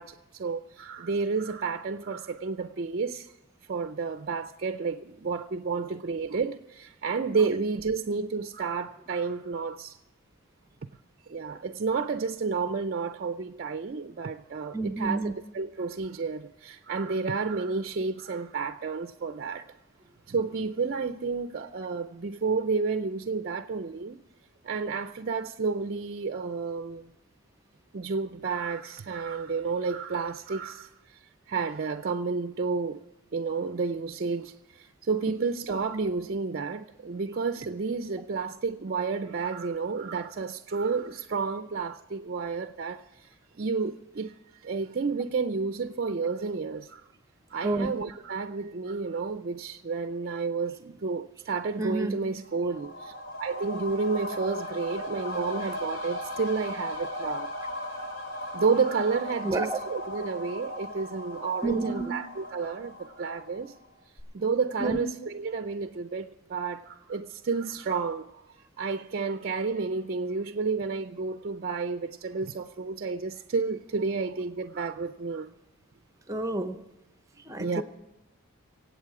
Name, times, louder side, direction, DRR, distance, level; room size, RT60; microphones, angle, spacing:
voice 1, 0.0-3.3 3.7-10.0 11.3-19.7 20.3-24.2 24.6-27.1 27.9-31.2 31.5-33.0 33.3-44.3 44.6-47.0 47.5-53.1 53.4-57.5 58.5-63.7 64.3-68.3 68.8-75.5 77.6-77.8, right 4 dB, 45° right, 0.5 m, -31 dB
voice 2, 14.7-15.4 47.6-47.9 51.8-52.2 59.4-59.8 61.6-62.1 64.8-65.0 76.3-76.8 77.5-77.8, right 2 dB, 15° right, 0.8 m, -29 dB
sound 1, 52.4-63.9 64.2-64.3, left 1 dB, 60° left, 3.0 m, -37 dB
25.0 x 8.3 x 4.8 m
head